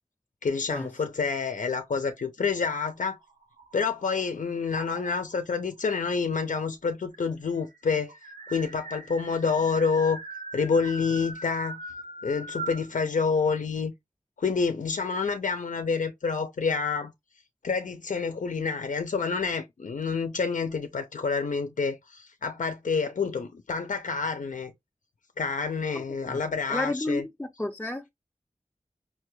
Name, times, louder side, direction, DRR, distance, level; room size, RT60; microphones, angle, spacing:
voice 1, 0.4-3.2 3.7-8.1 8.5-10.2 10.5-11.8 12.2-13.9 14.4-17.1 17.6-24.7 25.4-27.2, left 5 dB, 85° left, 0.5 m, -28 dB
sound 1, 2.9-4.2 4.7-5.4 6.4-6.5 6.7-6.8 7.1-12.9, right 2 dB, 85° right, 0.7 m, -41 dB
voice 2, 25.9-26.4 26.7-28.1, left 1 dB, 10° left, 0.4 m, -32 dB
5.4 x 2.2 x 3.0 m
wide cardioid pair, 55°, 13 cm